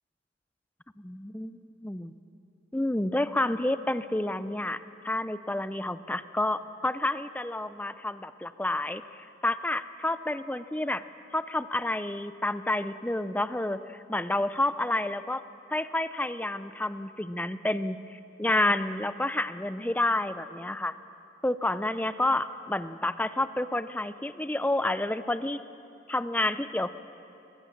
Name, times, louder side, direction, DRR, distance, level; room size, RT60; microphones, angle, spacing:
voice 1, 1.0-2.2 2.7-11.0 11.3-15.4 15.7-20.9 21.4-25.6 26.1-26.9, left 1 dB, 10° left, 13 dB, 0.5 m, -29 dB
22.0 x 20.5 x 7.2 m, 2.8 s
head